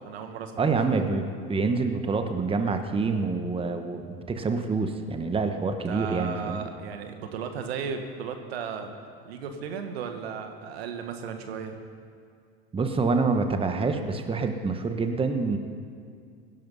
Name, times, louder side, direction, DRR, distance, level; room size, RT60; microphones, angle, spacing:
voice 1, 0.0-1.0 5.9-8.9 9.2-11.7, right 6 dB, 90° right, 6 dB, 1.6 m, -35 dB
voice 2, 0.6-6.6 12.7-15.6, right 4 dB, 20° right, 7 dB, 1.1 m, -27 dB
17.0 x 11.0 x 5.5 m, 2.3 s
supercardioid pair, 105°, 30 cm